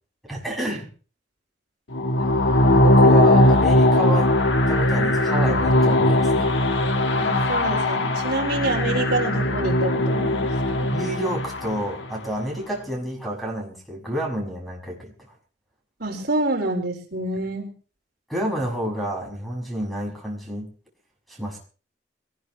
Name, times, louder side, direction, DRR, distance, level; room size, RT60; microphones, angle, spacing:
voice 1, 0.3-0.9 2.7-4.3 4.7-6.5 10.9-15.1 18.3-20.7 21.3-21.6, right 1 dB, ahead, -1 dB, 6.5 m, -29 dB
sound 1, 1.9-12.0, left 1 dB, 75° left, 1.4 m, -19 dB
voice 2, 7.2-10.9 16.0-17.7, right 2 dB, 55° right, 1 dB, 4.6 m, -27 dB
23.0 x 19.5 x 3.2 m, 0.40 s
head